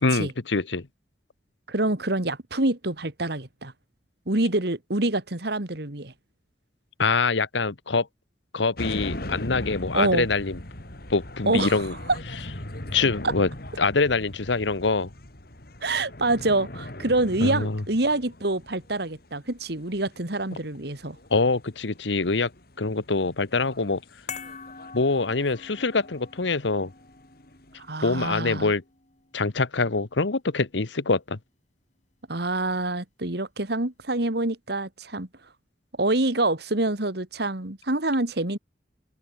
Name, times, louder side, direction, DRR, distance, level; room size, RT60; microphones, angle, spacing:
voice 1, 0.0-0.9 7.0-8.1 8.5-10.6 11.1-11.9 12.9-13.5 13.8-15.1 17.4-17.8 21.3-22.5 22.8-24.0 24.9-26.9 28.0-28.8 29.3-31.4, left 3 dB, 80° left, 1.2 m, -24 dB
voice 2, 1.7-3.7 4.3-6.1 9.9-10.3 11.5-11.8 12.1-12.2 13.2-13.3 15.8-21.2 27.8-28.7 32.3-35.3 36.0-38.6, right 2 dB, 60° right, 2.4 m, -26 dB
sound 1, 8.8-27.9, left 1 dB, 55° left, 3.6 m, -40 dB
sound 2, 24.3-30.7 31.0-31.1, left 6 dB, 40° left, 3.5 m, -45 dB
open air
head